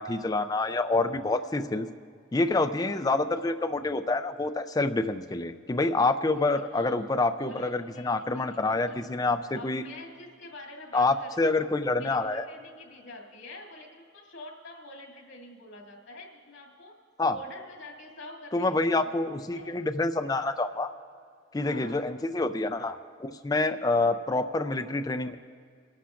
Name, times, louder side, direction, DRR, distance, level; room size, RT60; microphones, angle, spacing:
voice 1, 0.0-1.9 2.3-9.8 10.9-12.4 17.2-17.4 18.5-20.9 21.5-25.4, left 2 dB, 20° left, 8 dB, 0.4 m, -27 dB
voice 2, 6.5-7.0 7.3-9.0 9.5-11.7 12.0-12.2 12.4-17.0 17.3-19.1 19.5-19.7 21.6-22.0 23.9-24.1, left 2 dB, 90° left, -1 dB, 2.3 m, -46 dB
27.5 x 11.5 x 2.5 m, 2.1 s
head